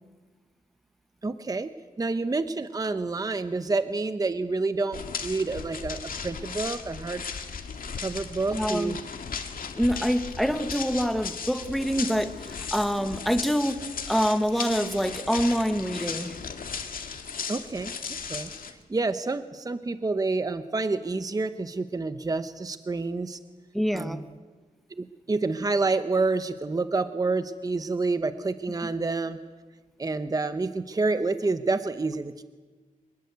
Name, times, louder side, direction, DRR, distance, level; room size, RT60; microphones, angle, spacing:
voice 1, 1.2-1.7 2.0-7.2 8.0-9.0 17.5-18.0 18.3-23.4 23.9-24.2 24.9-29.4 30.0-32.4, right 3 dB, 25° right, 11 dB, 0.8 m, -28 dB
sound 1, 4.9-18.7, left 6 dB, 80° left, 2.1 m, -36 dB
voice 2, 8.5-9.0 9.8-13.8 14.1-16.4 23.7-24.2, equal, ahead, 10 dB, 1.3 m, -26 dB
25.0 x 20.5 x 8.1 m, 1.3 s
wide cardioid pair, 130°, 14 cm